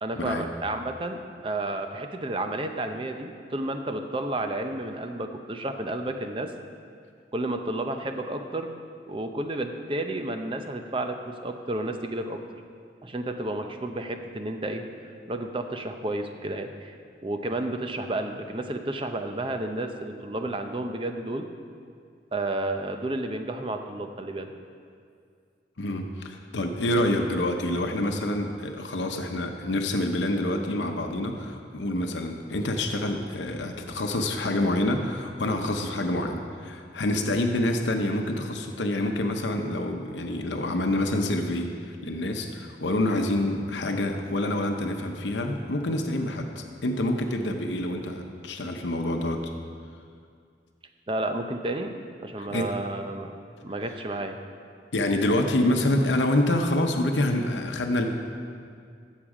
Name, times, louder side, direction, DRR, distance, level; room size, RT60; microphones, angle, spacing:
voice 1, 0.0-6.5 7.3-8.7 9.1-12.4 13.0-14.8 15.3-16.9 17.2-21.4 22.3-24.5 51.1-51.9 52.2-53.3 53.6-54.4, right 2 dB, 30° right, 6 dB, 0.6 m, -31 dB
voice 2, 25.8-49.4 52.4-52.7 54.9-58.1, left 1 dB, 85° left, 4 dB, 0.8 m, -27 dB
13.5 x 7.4 x 4.9 m, 2.2 s
head